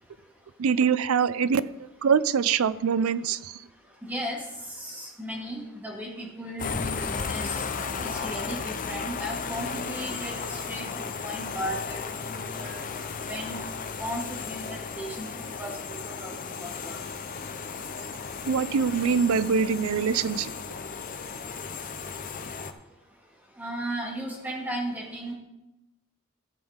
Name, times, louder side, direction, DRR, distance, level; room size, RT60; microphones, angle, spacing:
voice 1, 0.6-1.7 2.0-3.6 18.5-20.5, right 6 dB, 80° right, 17 dB, 0.4 m, -24 dB
voice 2, 4.0-7.6 8.0-10.9 11.2-12.0 12.3-12.8 13.2-13.6 14.0-15.3 15.6-15.8 16.0-17.0 23.6-25.3, equal, 10° right, -1 dB, 1.9 m, -35 dB
sound 1, 6.6-22.7, left 5 dB, 40° left, 0.6 m, -35 dB
14.0 x 7.1 x 3.7 m, 0.94 s
head